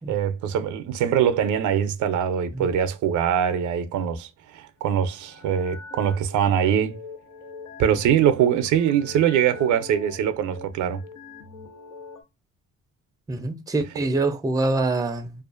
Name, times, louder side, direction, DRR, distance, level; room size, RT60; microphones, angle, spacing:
voice 1, 0.0-7.0 7.8-11.0, right 9 dB, 75° right, 0.5 m, -23 dB
sound 1, 4.8-12.2, left 3 dB, 75° left, 0.7 m, -43 dB
voice 2, 13.3-15.4, right 2 dB, 10° right, 0.4 m, -25 dB
2.4 x 2.4 x 2.3 m
cardioid pair, 90°, 30 cm